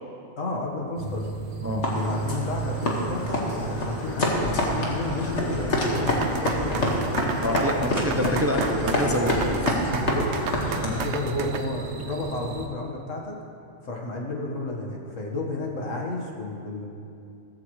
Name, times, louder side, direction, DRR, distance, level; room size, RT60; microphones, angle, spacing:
voice 1, 0.4-1.3 1.9-7.1 9.9-10.5 10.7-13.4 13.8-16.9, left 2 dB, 80° left, 0 dB, 1.9 m, -32 dB
sound 1, 1.0-12.7, right 4 dB, 90° right, 1.5 m, -35 dB
sound 2, 1.8-11.1, left 1 dB, 65° left, 2.1 m, -27 dB
sound 3, 5.8-11.6, right 6 dB, 65° right, 0.9 m, -33 dB
voice 2, 7.4-9.3 10.7-10.9, left 1 dB, 15° right, 1 dB, 0.8 m, -26 dB
15.5 x 14.5 x 3.2 m, 2.6 s
omnidirectional pair, 1.3 m